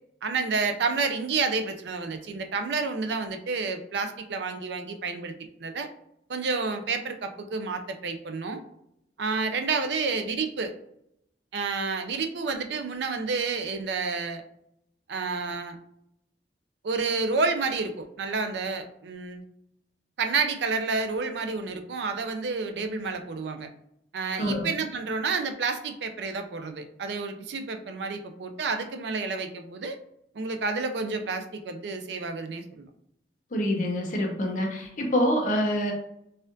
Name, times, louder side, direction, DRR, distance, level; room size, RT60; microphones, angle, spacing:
voice 1, 0.2-5.3 5.6-5.9 6.3-8.6 9.2-10.7 11.5-14.4 15.1-15.8 16.8-19.4 20.2-23.7 24.1-30.0 30.3-32.9, right 4 dB, 75° right, 7 dB, 0.4 m, -30 dB
voice 2, 24.4-24.7 33.5-35.9, equal, 45° left, 2 dB, 0.7 m, -26 dB
4.1 x 2.4 x 2.6 m, 0.76 s
head